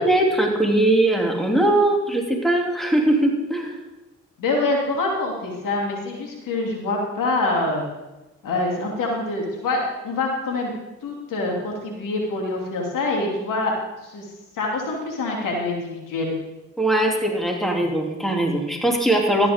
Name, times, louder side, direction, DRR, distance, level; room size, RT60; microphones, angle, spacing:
voice 1, 0.0-3.8 16.8-19.5, right 1 dB, ahead, 0 dB, 2.8 m, -20 dB
voice 2, 4.4-7.8 8.4-10.7 11.0-13.7 14.0-14.2 14.5-16.3, left 2 dB, 75° left, 0 dB, 2.9 m, -25 dB
13.0 x 10.5 x 3.7 m, 1.1 s
supercardioid pair, 55°, 32 cm